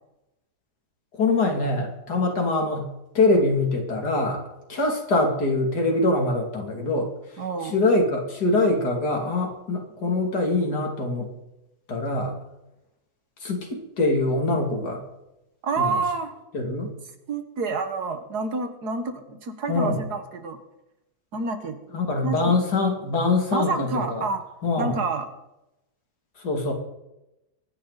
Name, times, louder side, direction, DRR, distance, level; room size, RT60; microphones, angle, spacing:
voice 1, 1.1-2.9 3.1-4.4 4.7-11.3 11.9-12.4 13.4-15.0 15.8-16.0 16.5-16.9 19.7-20.0 21.9-24.2 24.6-25.0 26.4-26.7, left 2 dB, 90° left, 2 dB, 3.4 m, -24 dB
voice 2, 7.4-7.8 15.6-16.4 17.3-20.6 21.3-21.8 22.2-22.6 23.5-24.4 24.8-25.3, right 4 dB, 80° right, 8 dB, 2.1 m, -28 dB
24.0 x 10.5 x 4.1 m, 0.90 s
omnidirectional pair, 1.7 m